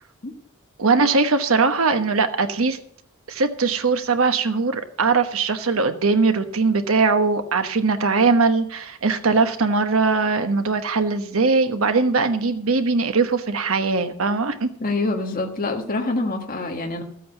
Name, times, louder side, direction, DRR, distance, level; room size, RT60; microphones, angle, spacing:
voice 1, 0.8-2.8 3.3-14.7, right 4 dB, 80° right, 8 dB, 1.1 m, -20 dB
voice 2, 14.8-17.0, left 2 dB, 45° left, 3 dB, 1.5 m, -25 dB
14.0 x 8.5 x 5.7 m, 0.66 s
head